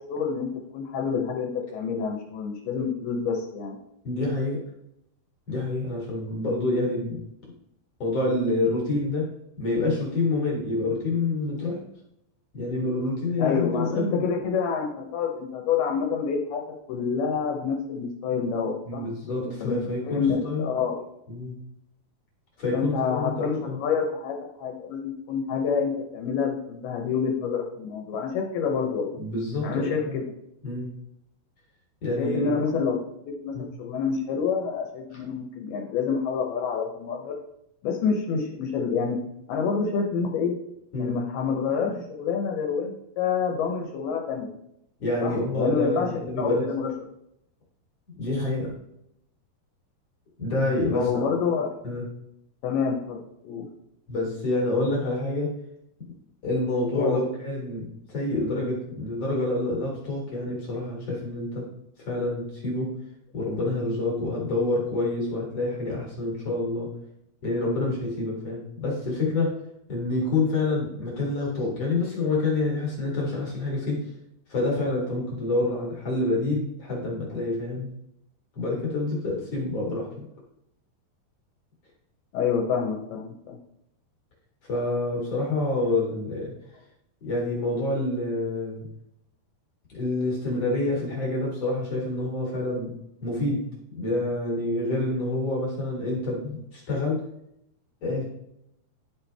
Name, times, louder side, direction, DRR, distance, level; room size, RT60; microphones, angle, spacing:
voice 1, 0.1-3.8 13.4-16.6 16.9-19.0 19.4-19.8 20.0-21.0 22.7-29.2 29.6-30.2 32.2-33.0 33.4-37.4 37.8-39.2 39.5-40.5 41.0-44.5 45.2-46.9 50.9-51.9 52.6-53.7 56.9-57.2 82.3-83.6, left 6 dB, 75° left, 1 dB, 2.6 m, -27 dB
voice 2, 4.0-4.6 5.5-7.2 8.0-9.3 9.6-11.8 12.5-14.3 18.9-20.6 21.3-21.6 22.6-23.8 29.2-30.2 30.6-30.9 32.0-32.5 33.5-33.7 40.9-41.1 45.0-46.7 48.1-48.7 50.4-51.3 51.8-52.1 54.1-55.5 56.4-61.7 62.0-63.0 63.3-66.9 67.4-69.6 69.9-74.1 74.5-77.9 78.6-80.2 84.7-86.5 87.2-88.9 89.9-92.9 93.2-93.6 93.9-97.2 98.0-98.2, left 2 dB, 50° left, -3 dB, 2.2 m, -27 dB
11.5 x 4.4 x 3.4 m, 0.79 s
omnidirectional pair, 4.7 m